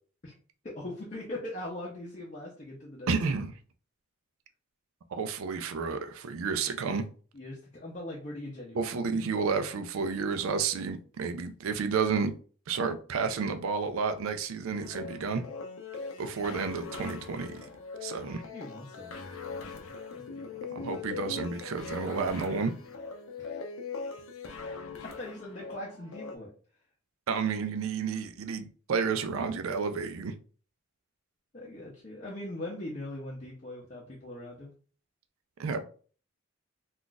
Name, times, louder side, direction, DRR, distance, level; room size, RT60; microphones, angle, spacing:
voice 1, 0.6-3.1 7.3-9.0 18.4-21.0 23.4-23.6 25.2-26.5 31.5-34.7, left 1 dB, 35° left, 0.6 m, -41 dB
voice 2, 3.1-3.5 5.1-7.0 8.8-12.3 12.7-15.4 16.2-17.7 18.0-18.4 20.7-22.7 27.3-30.3 35.6-35.9, right 5 dB, 80° right, 0.4 m, -31 dB
sound 1, 14.8-26.4, left 4 dB, 85° left, 0.5 m, -41 dB
2.4 x 2.3 x 3.8 m
head